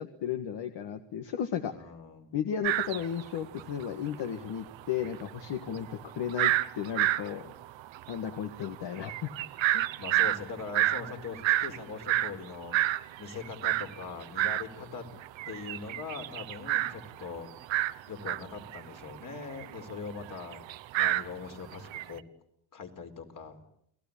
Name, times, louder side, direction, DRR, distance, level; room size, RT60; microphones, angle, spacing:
voice 1, 0.0-1.7 2.3-7.5 8.1-9.3 9.7-9.9, left 8 dB, 65° left, 7 dB, 1.8 m, -34 dB
voice 2, 1.7-2.4 10.0-12.8 13.2-15.0 15.5-17.5 18.1-20.6 21.0-22.2 22.7-23.6, left 5 dB, 45° left, 5 dB, 4.2 m, -41 dB
sound 1, 2.6-3.9 4.1-4.2 4.5-14.7 15.1-22.1, right 14 dB, 80° right, 1.1 m, -30 dB
29.0 x 19.5 x 8.7 m, 0.72 s
cardioid pair, 125°, 45 cm